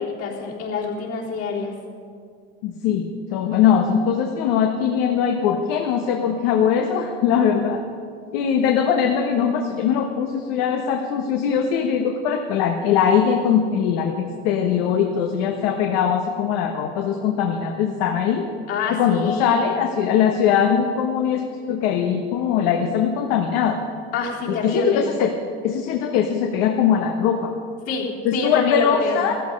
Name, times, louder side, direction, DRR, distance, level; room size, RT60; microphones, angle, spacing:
voice 1, 0.0-1.7 18.7-19.8 24.1-25.1 27.9-28.1 28.3-29.2, left 4 dB, 50° left, -2 dB, 3.6 m, -26 dB
voice 2, 2.6-7.8 8.3-18.4 18.9-23.8 24.6-25.3 25.6-27.5 28.2-29.4, left 8 dB, 70° left, 3 dB, 1.3 m, -21 dB
14.0 x 14.0 x 5.3 m, 2.2 s
supercardioid pair, 120°, 31 cm